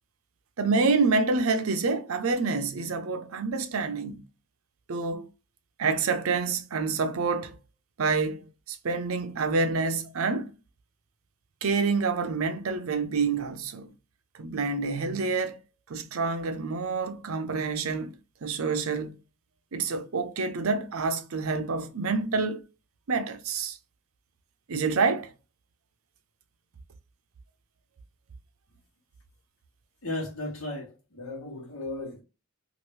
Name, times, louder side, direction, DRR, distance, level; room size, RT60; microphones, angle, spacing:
voice 1, 0.6-4.2 4.9-5.3 5.8-7.6 8.0-8.4 8.7-10.5 11.6-13.9 14.4-15.6 15.9-18.2 18.4-19.2 19.7-22.6 23.1-23.8 24.7-25.3, right 4 dB, 80° right, 0.6 m, -27 dB
voice 2, 30.0-32.2, left 2 dB, 75° left, 1.2 m, -35 dB
2.9 x 2.5 x 3.1 m
head